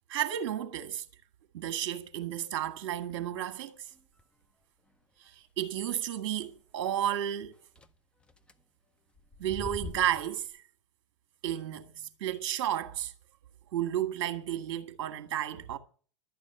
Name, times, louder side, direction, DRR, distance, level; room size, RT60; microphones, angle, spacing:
voice 1, 0.1-1.0 1.5-3.8 5.6-7.5 9.4-10.5 11.4-13.1 13.7-15.8, right 11 dB, 45° right, 1.7 m, -32 dB
sound 1, 3.9-4.2 4.9-5.0 5.2-5.3 5.7-5.8 7.8-7.9 8.2-8.5 9.1-10.5, left 4 dB, 5° left, 0.6 m, -44 dB
11.5 x 8.8 x 9.7 m
figure-of-eight pair, 100°, 17 cm